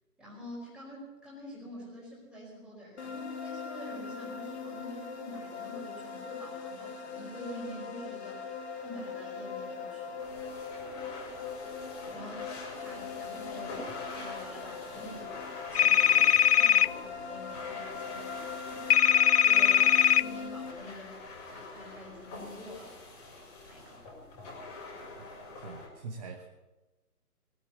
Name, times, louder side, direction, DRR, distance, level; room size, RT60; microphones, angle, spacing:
voice 1, 0.2-10.2 12.1-12.4 12.8-19.0 19.4-21.2 21.5-22.9 23.7-24.0, equal, ahead, -5 dB, 4.8 m, -47 dB
sound 1, 3.0-20.7, left 5 dB, 45° left, 2.0 m, -41 dB
sound 2, 10.2-25.9, left 2 dB, 25° left, 4.9 m, -46 dB
sound 3, 15.8-16.9 18.9-20.2, left 9 dB, 85° left, 0.6 m, -21 dB
voice 2, 25.2-26.5, right 4 dB, 25° right, 3 dB, 1.2 m, -44 dB
19.5 x 8.7 x 8.3 m, 1.1 s
figure-of-eight pair, 150°, 46 cm